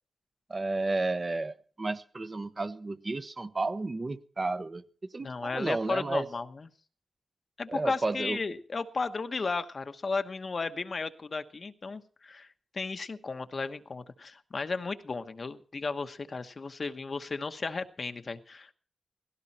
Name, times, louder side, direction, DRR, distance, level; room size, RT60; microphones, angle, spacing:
voice 1, 0.5-4.8 5.1-6.3 7.7-8.4, right 2 dB, 30° right, 1.0 m, -32 dB
voice 2, 5.2-6.7 7.6-12.5 12.7-18.7, left 4 dB, 45° left, 1.1 m, -34 dB
17.5 x 16.5 x 4.3 m
wide cardioid pair, 100°, 0 cm